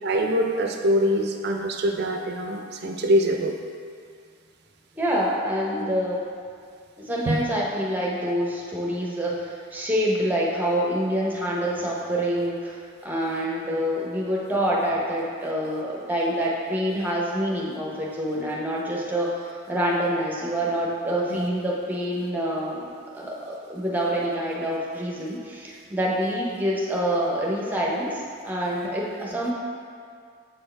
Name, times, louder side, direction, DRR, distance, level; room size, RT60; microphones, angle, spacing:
voice 1, 0.0-3.5 7.3-7.4 21.3-21.5, equal, 50° right, 3 dB, 0.4 m, -24 dB
voice 2, 5.0-6.2 7.0-29.5, equal, 10° right, -4 dB, 0.7 m, -26 dB
7.7 x 4.5 x 3.3 m, 2.2 s
head